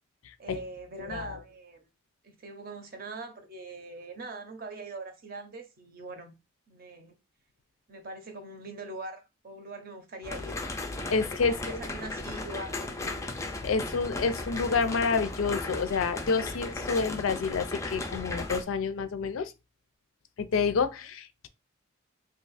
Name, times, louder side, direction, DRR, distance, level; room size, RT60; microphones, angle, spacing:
voice 1, 0.4-1.9 2.2-6.3 6.7-7.1 7.9-10.6 11.4-12.8, right 2 dB, 45° right, 0.6 m, -42 dB
voice 2, 1.1-1.4 11.1-11.8 13.6-19.5 20.4-21.5, left 5 dB, 80° left, 0.4 m, -28 dB
sound 1, 10.2-18.6, left 2 dB, 15° left, 0.3 m, -36 dB
2.7 x 2.4 x 4.0 m
head